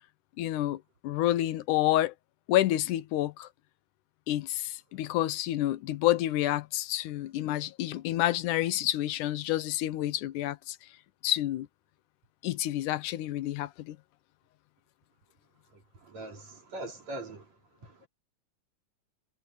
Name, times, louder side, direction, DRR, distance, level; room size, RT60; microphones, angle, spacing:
voice 1, 0.4-2.1 2.5-3.5 4.3-10.8 11.2-11.7 12.4-14.0, left 14 dB, 80° left, 2.3 m, -29 dB
voice 2, 16.1-17.5 17.8-17.9, right 1 dB, 55° right, 5.6 m, -41 dB
omnidirectional pair, 3.6 m